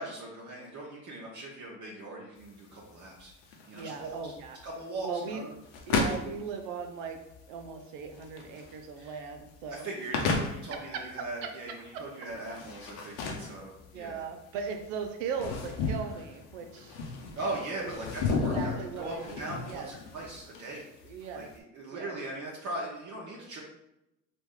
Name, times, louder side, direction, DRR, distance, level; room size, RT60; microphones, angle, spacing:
voice 1, 0.0-4.1 4.6-5.5 9.0-9.2 9.7-14.2 17.3-20.9 21.3-23.6, right 2 dB, 50° right, -4 dB, 0.9 m, -40 dB
sound 1, 2.4-21.5, left 4 dB, 85° left, 0.7 m, -36 dB
voice 2, 3.7-4.6 5.0-5.5 5.9-7.2 7.5-9.9 10.7-12.0 13.9-17.1 17.8-18.0 18.3-19.9 21.0-21.5 21.9-22.2, right 6 dB, 90° right, 4 dB, 0.6 m, -38 dB
3.0 x 2.5 x 3.6 m, 0.88 s
supercardioid pair, 70°, 37 cm